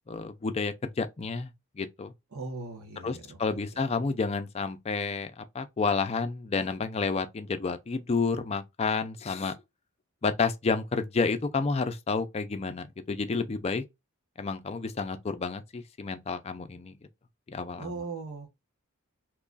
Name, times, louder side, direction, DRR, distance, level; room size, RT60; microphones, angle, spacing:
voice 1, 0.1-1.5 1.8-2.1 3.0-9.5 10.2-13.8 14.4-17.0 17.5-17.9, left 4 dB, 30° left, 0.4 m, -30 dB
voice 2, 2.3-3.8 17.8-18.6, right 3 dB, 80° right, 1.2 m, -39 dB
3.0 x 2.3 x 3.8 m
head